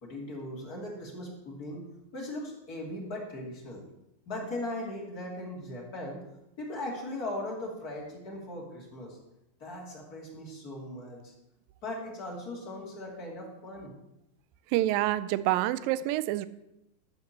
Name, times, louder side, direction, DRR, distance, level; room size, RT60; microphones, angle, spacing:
voice 1, 0.0-1.8 2.1-3.8 4.3-6.2 6.6-9.2 9.6-11.3 11.8-13.9, left 1 dB, 25° left, -2 dB, 2.6 m, -38 dB
voice 2, 14.7-16.5, right 15 dB, 80° right, 15 dB, 2.1 m, -27 dB
13.5 x 6.0 x 7.3 m, 0.88 s
omnidirectional pair, 4.4 m